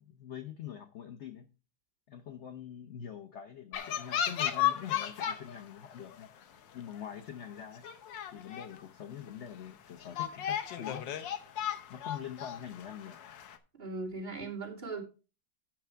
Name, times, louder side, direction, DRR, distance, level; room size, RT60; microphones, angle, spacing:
voice 1, 0.0-1.5 2.1-6.3 6.7-7.8 8.3-11.0 11.9-13.2, left 9 dB, 60° left, 7 dB, 0.7 m, -44 dB
sound 1, 3.7-5.6 5.9-6.3 6.9-7.0 7.4-7.5 7.8-8.8 9.3-9.4 10.0-13.6, left 10 dB, 80° left, 1.6 m, -34 dB
voice 2, 13.8-15.0, right 3 dB, 25° right, -4 dB, 3.0 m, -38 dB
9.1 x 6.0 x 4.5 m, 0.33 s
omnidirectional pair, 2.0 m